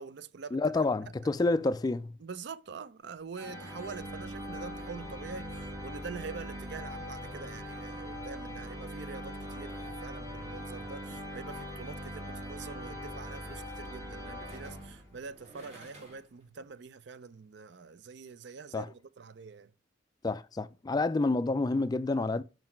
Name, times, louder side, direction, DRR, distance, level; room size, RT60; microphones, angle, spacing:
voice 1, 0.0-0.8 1.1-1.2 2.2-19.7, right 5 dB, 65° right, 0.5 m, -45 dB
voice 2, 0.5-2.2 18.7-18.9 20.2-22.4, left 3 dB, 20° left, 0.3 m, -28 dB
sound 1, 3.3-15.3, equal, 20° right, 1.8 m, -41 dB
sound 2, 14.5-16.4 16.8-16.9, right 1 dB, 40° right, 2.7 m, -55 dB
5.8 x 5.2 x 4.3 m
head